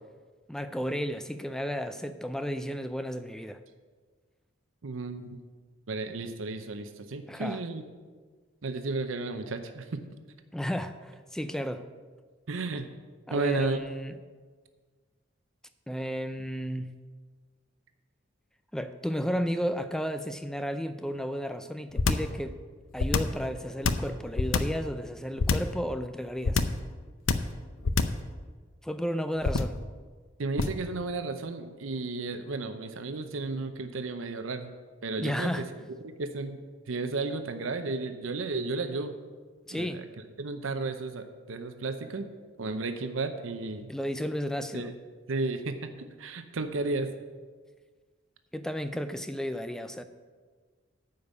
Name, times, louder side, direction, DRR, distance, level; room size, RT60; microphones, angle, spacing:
voice 1, 0.5-3.6 7.3-7.6 10.5-11.9 13.3-14.2 15.9-16.9 18.7-22.6 22.9-26.7 28.8-29.8 35.2-35.6 39.7-40.1 43.9-44.9 48.5-50.0, equal, 5° left, 10 dB, 0.4 m, -33 dB
voice 2, 4.8-5.4 5.9-7.8 8.6-10.0 12.5-12.9 13.3-13.8 30.4-34.7 35.0-35.7 36.0-36.6 36.9-39.2 39.7-40.1 40.4-42.3 42.6-43.9 44.7-44.9 45.3-45.9 46.2-47.1, right 3 dB, 90° right, 8 dB, 0.7 m, -33 dB
sound 1, 22.0-22.3 23.0-23.4 23.8-24.8 25.4-25.8 26.4-26.8 27.3-27.6 27.8-28.3 29.4-29.8 30.6-30.9, left 4 dB, 85° left, 0.6 m, -25 dB
9.4 x 5.3 x 8.1 m, 1.5 s
head